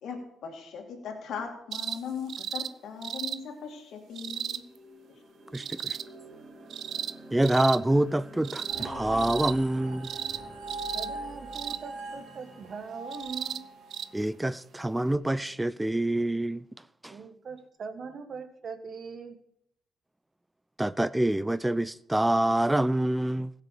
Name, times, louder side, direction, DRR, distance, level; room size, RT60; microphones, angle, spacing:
voice 1, 0.0-4.6, left 6 dB, 70° left, 2.4 m, -39 dB
sound 1, 1.7-2.0 2.3-2.7 3.0-3.4 4.2-4.6 5.5-6.0 6.7-7.1 7.4-7.8 8.4-8.9 9.2-9.5 10.0-10.4 10.7-11.1 11.5-11.8 13.1-13.6 13.9-14.1 15.1-15.2, right 9 dB, 65° right, 0.5 m, -35 dB
sound 2, 3.9-15.9, right 1 dB, 25° right, 3.7 m, -50 dB
voice 2, 5.5-6.0 7.3-10.1 14.1-16.6 17.0-17.2 20.8-23.5, right 1 dB, 10° right, 0.4 m, -26 dB
sound 3, 8.7-14.1, right 2 dB, 90° right, 3.1 m, -41 dB
voice 3, 10.9-13.6 17.1-19.4, right 5 dB, 50° right, 1.6 m, -41 dB
16.0 x 6.6 x 6.6 m
cardioid pair, 90°, 0 cm